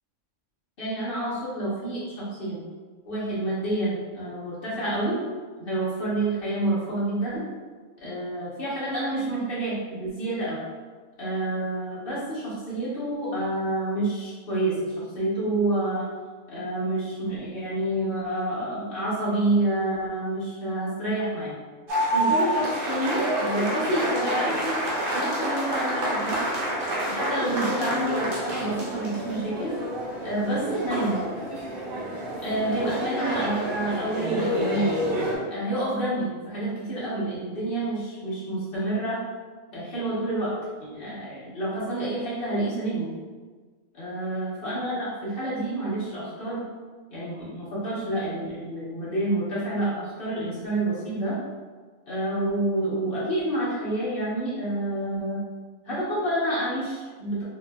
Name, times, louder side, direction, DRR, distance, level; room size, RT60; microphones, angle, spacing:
voice 1, 0.8-2.6 3.0-5.2 5.6-7.4 8.0-10.6 11.2-16.1 16.5-21.5 22.1-24.9 25.1-26.4 27.0-29.7 30.2-31.2 32.4-34.9 35.5-39.2 39.7-40.5 40.8-43.1 43.9-46.7 47.1-51.3 52.1-55.4 55.8-57.4, right 1 dB, 45° left, -8 dB, 1.3 m, -28 dB
sound 1, 21.9-35.3, right 1 dB, 50° right, 0.8 m, -28 dB
3.9 x 3.0 x 2.4 m, 1.4 s
omnidirectional pair, 1.4 m